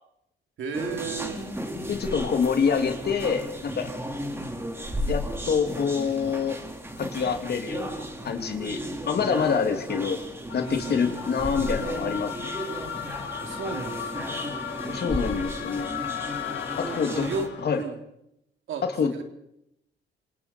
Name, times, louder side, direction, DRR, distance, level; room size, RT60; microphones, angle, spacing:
voice 1, 0.6-1.5 10.7-11.2 13.4-14.3 16.8-17.9 18.7-19.2, right 5 dB, 75° right, 3 dB, 3.2 m, -35 dB
sound 1, 0.7-17.5, equal, 10° right, 4.3 m, -34 dB
voice 2, 1.9-3.9 5.1-6.6 7.0-10.2 10.5-12.5 14.8-16.0 16.8-17.3 17.6-17.8 18.8-19.1, left 6 dB, 55° left, 5 dB, 2.7 m, -26 dB
sound 2, 10.5-17.7, left 9 dB, 75° left, 2.0 m, -36 dB
27.5 x 27.0 x 4.5 m, 0.81 s
cardioid pair, 90°, 20 cm